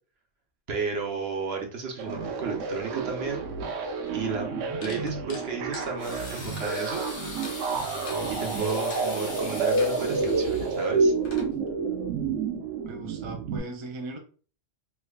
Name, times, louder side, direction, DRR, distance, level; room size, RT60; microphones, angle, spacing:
voice 1, 0.7-3.5 4.1-4.5 4.8-7.0 8.3-11.1, right 4 dB, 60° right, 2 dB, 1.0 m, -33 dB
sound 1, 2.0-13.6, right 4 dB, 85° right, 1.0 m, -29 dB
sound 2, 4.1-4.2 4.8-6.8 7.4-7.6 8.1-8.2 8.7-9.1 9.8-10.0, left 4 dB, 85° left, 1.2 m, -44 dB
sound 3, 6.0-11.5, left 2 dB, 70° left, 1.2 m, -41 dB
voice 2, 8.4-8.8 12.8-14.2, right 2 dB, 40° right, 3 dB, 0.4 m, -39 dB
3.4 x 3.1 x 2.3 m, 0.39 s
omnidirectional pair, 1.3 m